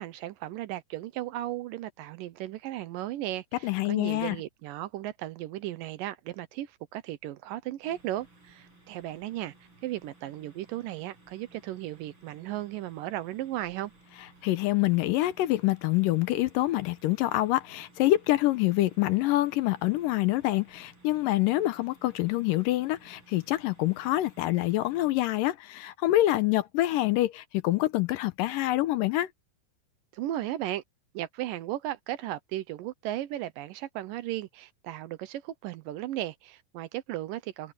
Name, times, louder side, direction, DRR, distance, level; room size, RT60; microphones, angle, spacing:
voice 1, 0.0-9.5 9.8-13.9 30.1-30.8 31.1-37.7, right 14 dB, 75° right, 2.3 m, -35 dB
voice 2, 3.6-4.4 14.4-29.3, left 16 dB, 80° left, 2.2 m, -26 dB
sound 1, 7.8-25.1, right 2 dB, 30° right, 6.7 m, -58 dB
omnidirectional pair, 4.2 m